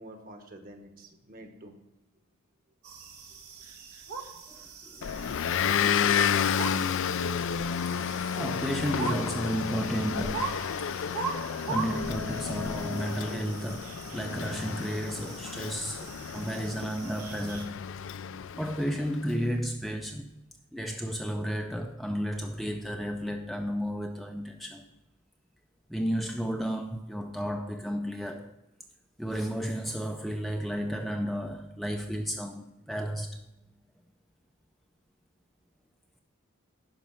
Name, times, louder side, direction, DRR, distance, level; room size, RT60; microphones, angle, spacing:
voice 1, 0.0-1.8 8.4-8.5 14.0-14.2, right 1 dB, 40° right, 1.2 m, -48 dB
sound 1, 2.8-17.6, right 5 dB, 85° right, 1.5 m, -41 dB
voice 2, 4.5-5.1 7.4-10.7 11.7-17.8 18.6-20.4 20.7-24.9 25.9-28.5 29.2-33.4, equal, ahead, 0.4 m, -33 dB
Motor vehicle (road) / Engine, 5.0-19.2, left 8 dB, 60° left, 0.4 m, -31 dB
11.5 x 5.3 x 5.6 m
head